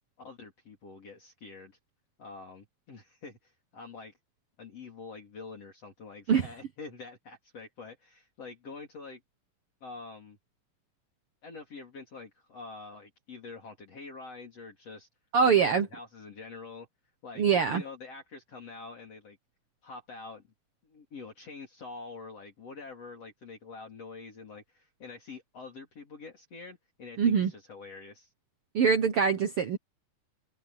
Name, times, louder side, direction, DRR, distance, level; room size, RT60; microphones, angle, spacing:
voice 1, 0.2-1.8 2.2-4.1 4.6-9.2 9.8-10.4 11.4-15.1 15.4-16.9 17.2-17.4 17.7-19.4 19.8-20.4 20.8-28.3, left 4 dB, 45° left, 4.6 m, -46 dB
voice 2, 15.3-15.9 17.4-17.8 27.2-27.5 28.7-29.8, right 6 dB, 70° right, 1.4 m, -23 dB
open air
omnidirectional pair, 3.9 m